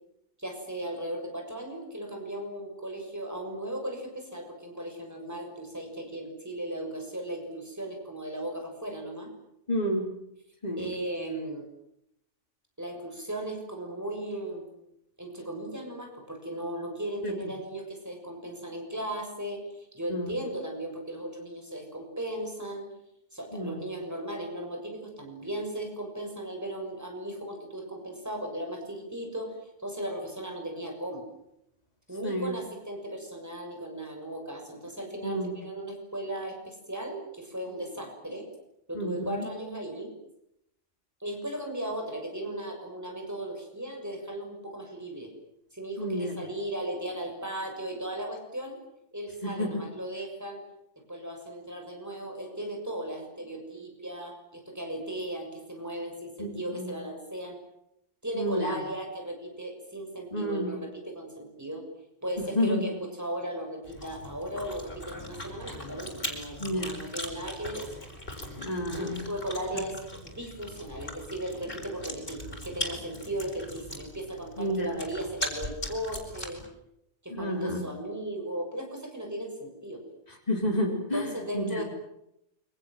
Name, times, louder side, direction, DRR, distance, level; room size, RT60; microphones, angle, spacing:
voice 1, 0.4-9.3 10.8-11.6 12.8-14.7 15.2-22.9 23.3-31.2 32.1-38.5 38.9-40.1 41.2-45.3 45.7-48.8 49.1-50.6 51.0-57.6 58.2-61.8 62.2-68.0 68.9-70.0 70.3-76.6 77.2-80.0 80.9-81.8, right 1 dB, 15° right, 2 dB, 6.9 m, -36 dB
voice 2, 9.7-10.1 10.6-10.9 17.2-17.3 20.1-20.3 23.5-23.8 32.2-32.5 35.2-35.5 38.9-39.4 46.0-46.4 49.4-49.8 56.4-56.9 58.3-58.8 60.3-60.7 62.5-62.9 66.6-67.1 68.6-69.2 74.6-75.0 77.3-77.8 80.5-81.3 81.5-81.8, equal, 35° left, -1 dB, 3.9 m, -30 dB
Chewing mastication, 63.8-76.7, left 1 dB, 50° left, 7.3 m, -40 dB
29.0 x 25.5 x 7.7 m, 0.81 s
omnidirectional pair, 1.2 m